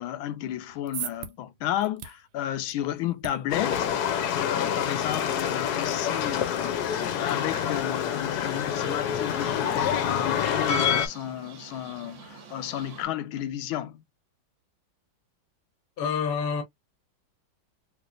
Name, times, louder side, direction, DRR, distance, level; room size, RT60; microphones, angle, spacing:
voice 1, 0.0-3.9 4.3-14.0, left 12 dB, 90° left, 1.4 m, -33 dB
sound 1, 0.5-6.9, right 10 dB, 85° right, 1.4 m, -44 dB
sound 2, 3.5-11.1, left 8 dB, 65° left, 1.0 m, -27 dB
sound 3, 7.4-13.1, right 6 dB, 50° right, 0.9 m, -47 dB
voice 2, 16.0-16.6, left 6 dB, 40° left, 0.8 m, -27 dB
3.3 x 3.0 x 2.4 m
omnidirectional pair, 2.2 m